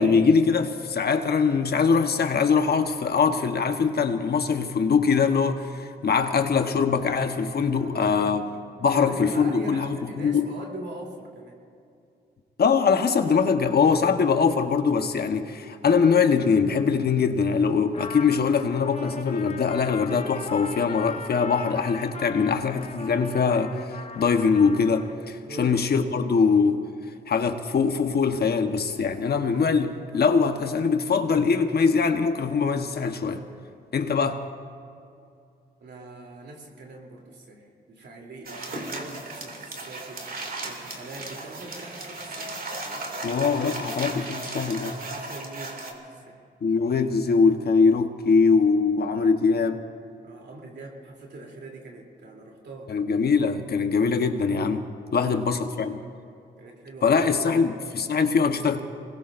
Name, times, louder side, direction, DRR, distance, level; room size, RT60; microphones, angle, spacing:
voice 1, 0.0-8.4 8.8-10.5 12.6-26.8 27.3-33.4 33.9-34.4 43.2-45.0 46.6-49.8 52.9-54.9 55.1-56.0 57.0-58.8, left 5 dB, 60° left, 7 dB, 1.2 m, -22 dB
voice 2, 7.7-11.6 25.4-26.2 35.8-42.7 44.8-46.5 50.2-53.0 55.0-55.4 56.6-57.7, right 2 dB, 70° right, 0 dB, 3.3 m, -42 dB
Trumpet, 17.9-25.2, left 4 dB, 40° left, 1.0 m, -39 dB
sound 1, 38.4-45.9, right 2 dB, 55° right, 2.6 m, -36 dB
26.0 x 20.5 x 2.6 m, 2.4 s
cardioid pair, 55°, 18 cm